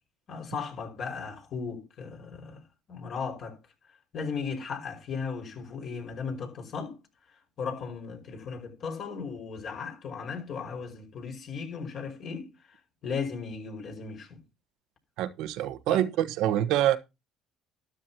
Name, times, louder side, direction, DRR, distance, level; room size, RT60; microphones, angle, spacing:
voice 1, 0.3-2.6 2.9-3.6 4.1-7.0 7.6-12.5 13.0-14.4 15.9-16.1, left 5 dB, 55° left, 5.3 m, -36 dB
voice 2, 15.2-17.0, right 12 dB, 70° right, 1.2 m, -26 dB
13.0 x 12.0 x 2.9 m
supercardioid pair, 80°, 0 cm